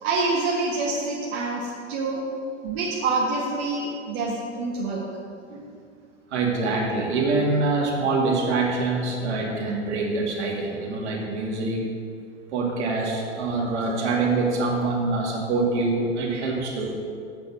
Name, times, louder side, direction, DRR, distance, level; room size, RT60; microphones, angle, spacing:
voice 1, 0.0-2.2 2.6-5.0, right 3 dB, 50° right, -4 dB, 1.7 m, -26 dB
voice 2, 6.3-11.8 12.5-17.0, right 3 dB, 70° right, -1 dB, 2.3 m, -25 dB
8.1 x 6.2 x 7.2 m, 2.3 s
figure-of-eight pair, 90°, 36 cm